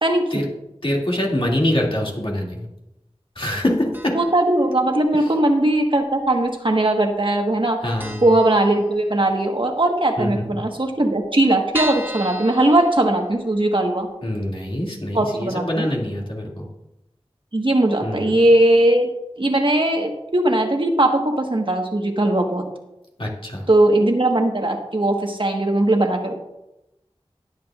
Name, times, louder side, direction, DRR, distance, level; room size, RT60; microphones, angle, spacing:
voice 1, 0.0-0.4 4.1-7.8 8.2-14.1 15.1-15.9 17.5-19.1 19.4-22.6 23.7-26.4, right 1 dB, 50° right, 2 dB, 1.4 m, -19 dB
voice 2, 0.8-2.7 3.4-4.1 7.8-8.2 10.2-10.6 14.2-16.7 18.0-18.3 23.2-23.7, left 1 dB, 55° left, -2 dB, 2.4 m, -24 dB
sound 1, 3.9-4.5 4.7-4.8 5.8-6.5 6.7-6.9 7.2-7.3 7.6-7.7 8.0-9.3 9.7-9.8 10.1-10.2 10.3-10.4 10.9-13.6 14.0-14.1 14.5-14.6, right 1 dB, 20° right, 1.2 m, -34 dB
20.5 x 7.3 x 2.4 m, 0.94 s
wide cardioid pair, 45°, 11 cm